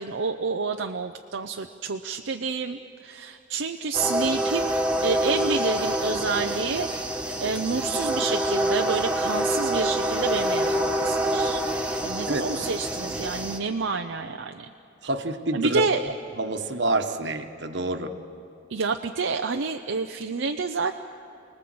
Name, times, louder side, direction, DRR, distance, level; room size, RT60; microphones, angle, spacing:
voice 1, 0.0-4.7 5.0-11.6 12.0-14.7 15.5-16.1 18.7-21.0, right 4 dB, 80° right, 4 dB, 0.7 m, -29 dB
sound 1, 3.9-13.6, right 1 dB, 5° right, 1.6 m, -26 dB
voice 2, 12.3-12.6 15.0-15.9 16.4-18.1, right 2 dB, 65° right, 7 dB, 1.3 m, -28 dB
29.0 x 20.0 x 7.8 m, 2.7 s
head